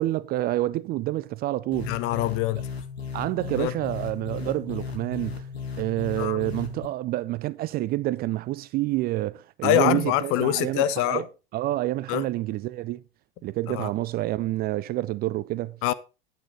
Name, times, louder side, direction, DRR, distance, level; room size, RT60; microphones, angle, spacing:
voice 1, 0.0-1.9 3.1-5.5 5.8-11.2 11.5-13.0 13.4-15.8, right 16 dB, 30° right, 0.4 m, -28 dB
sound 1, 1.7-6.9, left 6 dB, 85° left, 1.8 m, -36 dB
voice 2, 1.9-2.7 3.6-3.7 6.2-6.5 9.6-11.3 12.1-12.2 13.7-13.9 15.8-15.9, left 13 dB, 45° left, 0.9 m, -24 dB
9.2 x 8.7 x 4.2 m
hypercardioid pair, 90°, 30 cm